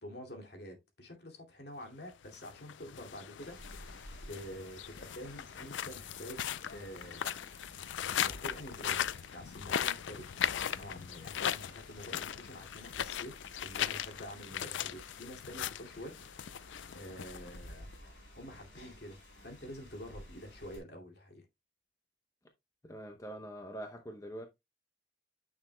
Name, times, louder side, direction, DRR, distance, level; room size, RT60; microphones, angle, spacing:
voice 1, 0.0-6.4 6.7-7.5 8.2-9.0 9.3-13.3 13.6-16.2 16.6-17.9 18.3-21.4, equal, 55° left, 2.4 m, -48 dB
sound 1, 2.2-17.9, left 10 dB, 75° left, 0.4 m, -38 dB
Rain, 3.4-20.8, left 1 dB, 90° left, 4.3 m, -54 dB
voice 2, 22.8-24.5, right 1 dB, 15° left, 0.8 m, -44 dB
9.3 x 6.5 x 2.2 m
head